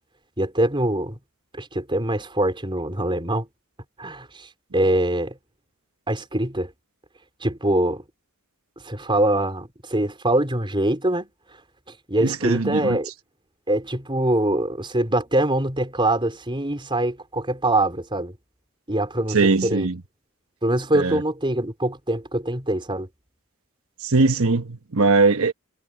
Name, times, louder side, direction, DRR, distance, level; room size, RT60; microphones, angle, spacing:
voice 1, 0.4-1.2 1.6-3.5 4.0-4.5 4.7-5.4 6.1-6.7 7.4-8.0 8.8-11.3 12.1-13.1 13.7-18.3 18.9-19.9 20.6-23.1, right 1 dB, 20° right, 4.5 m, -23 dB
voice 2, 12.2-13.0 19.3-20.0 20.9-21.2 24.0-25.5, right 3 dB, 70° right, 1.1 m, -20 dB
head